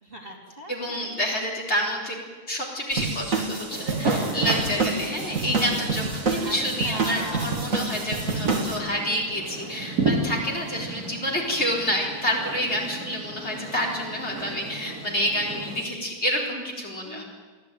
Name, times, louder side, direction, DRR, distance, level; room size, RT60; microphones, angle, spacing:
voice 1, 0.0-1.3 6.4-6.6 6.8-7.6 8.0-8.7 17.0-17.2, right 1 dB, 35° right, 0 dB, 3.1 m, -40 dB
voice 2, 0.7-2.2 2.5-17.2, equal, 45° left, -2 dB, 4.5 m, -28 dB
sound 1, 2.9-8.8, right 3 dB, 55° right, 2.7 m, -28 dB
sound 2, 3.7-15.8, right 3 dB, 80° right, 3.1 m, -33 dB
23.0 x 15.0 x 9.3 m, 1.4 s
omnidirectional pair, 1.6 m